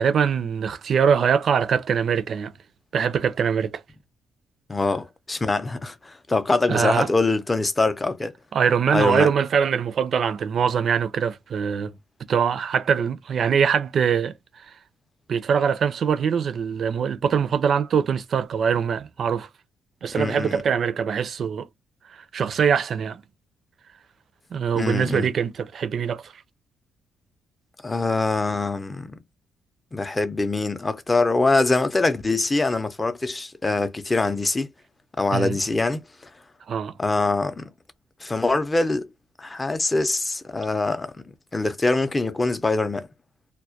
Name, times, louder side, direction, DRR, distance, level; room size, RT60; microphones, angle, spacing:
voice 1, 0.0-2.5 2.9-3.8 6.7-7.1 8.5-11.9 12.3-14.3 15.3-19.5 20.0-21.7 22.1-23.2 24.5-26.3 35.3-35.6 36.7-36.9, right 7 dB, 55° right, 0.4 m, -23 dB
voice 2, 4.7-8.3 8.9-9.3 20.1-20.6 24.8-25.3 27.8-29.1 29.9-34.7 35.2-36.0 37.0-37.7 38.2-39.1 39.4-41.2 41.5-43.1, left 3 dB, 20° left, 0.5 m, -23 dB
2.2 x 2.1 x 2.7 m
cardioid pair, 90°, 0 cm